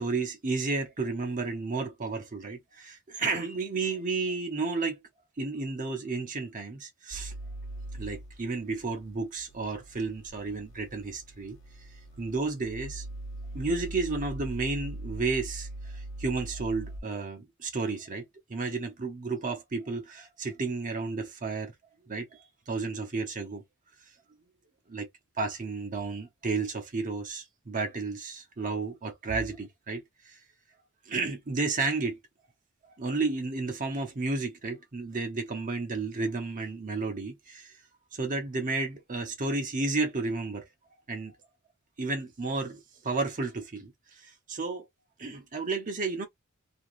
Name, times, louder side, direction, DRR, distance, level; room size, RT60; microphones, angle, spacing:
voice 1, 0.0-5.0 5.4-7.3 8.0-11.9 12.2-13.1 13.5-21.7 22.1-23.6 24.9-25.1 25.4-30.4 31.1-32.2 32.8-37.8 38.1-40.7 41.1-41.3 42.0-44.9 45.2-46.2, right 3 dB, 35° right, 0.7 m, -32 dB
sound 1, 7.1-17.0, right 1 dB, 55° left, 0.9 m, -41 dB
2.8 x 2.5 x 3.0 m
head